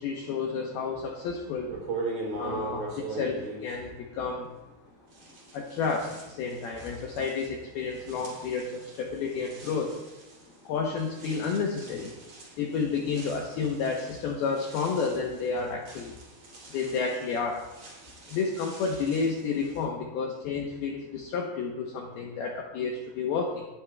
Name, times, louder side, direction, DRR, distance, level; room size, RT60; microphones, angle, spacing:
voice 1, 0.0-1.7 2.4-4.5 5.5-9.9 10.6-12.1 12.6-16.2 16.7-17.6 18.3-23.7, left 5 dB, 85° left, 0 dB, 2.2 m, -31 dB
sound 1, 1.1-1.2 1.7-4.8 5.1-19.8, right 3 dB, 35° right, 3.4 m, -42 dB
19.0 x 11.0 x 2.3 m, 1.0 s
omnidirectional pair, 5.9 m